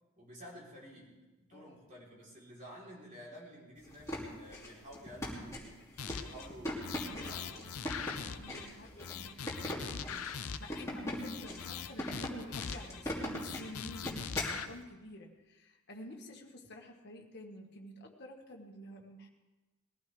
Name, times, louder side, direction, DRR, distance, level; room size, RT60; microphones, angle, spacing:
voice 1, 0.2-8.4, equal, 35° right, -4 dB, 3.9 m, -52 dB
voice 2, 1.5-1.8 8.2-19.3, left 1 dB, 50° left, 1 dB, 1.8 m, -50 dB
sound 1, 3.9-14.6, left 1 dB, 15° left, 2.8 m, -40 dB
sound 2, 6.0-6.5 6.8-8.7 9.0-10.8 11.2-13.0 13.4-14.7, left 7 dB, 75° left, 0.7 m, -42 dB
21.0 x 15.0 x 3.5 m, 1.1 s
head